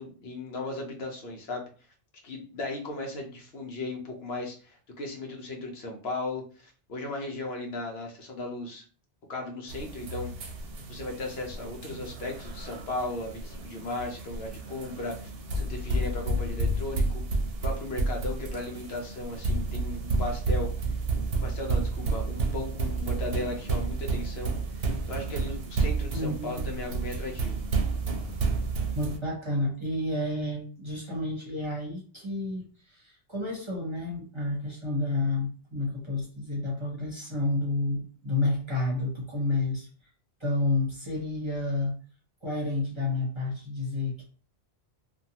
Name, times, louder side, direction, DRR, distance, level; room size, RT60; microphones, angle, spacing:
voice 1, 0.0-1.7 2.2-8.8 9.3-10.5 10.9-17.2 17.6-20.7 21.4-27.6, left 2 dB, 70° left, 1 dB, 0.9 m, -36 dB
sound 1, 9.7-29.2, right 3 dB, 70° right, 0.7 m, -31 dB
voice 2, 26.1-26.7 28.9-39.9 40.4-42.0 42.4-44.2, left 2 dB, 30° right, -3 dB, 0.8 m, -30 dB
2.6 x 2.3 x 2.7 m, 0.40 s
omnidirectional pair, 1.1 m